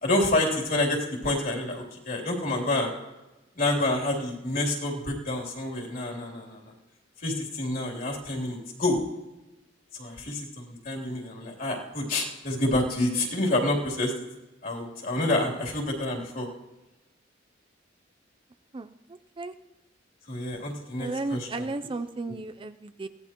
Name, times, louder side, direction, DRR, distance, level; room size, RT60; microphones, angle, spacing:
voice 1, 0.0-2.9 3.6-6.7 7.2-9.0 10.0-14.1 14.6-16.5 20.3-21.7, left 1 dB, 50° left, -1 dB, 3.2 m, -28 dB
voice 2, 18.7-19.5 21.0-23.1, right 3 dB, 25° right, 11 dB, 0.5 m, -34 dB
22.0 x 16.5 x 3.0 m, 1.1 s
head